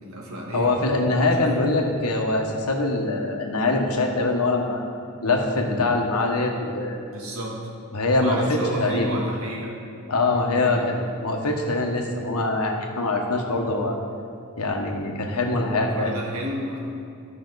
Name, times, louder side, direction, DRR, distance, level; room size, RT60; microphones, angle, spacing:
voice 1, 0.0-0.8 1.4-1.6 7.1-7.6 8.2-9.8 10.6-11.0 15.9-16.9, equal, 70° right, -3 dB, 1.8 m, -31 dB
voice 2, 0.5-4.8 5.2-7.0 7.9-9.2 10.1-10.8 11.2-14.0 14.6-16.1, left 2 dB, 90° left, 2 dB, 1.1 m, -23 dB
13.5 x 5.8 x 4.0 m, 2.4 s
head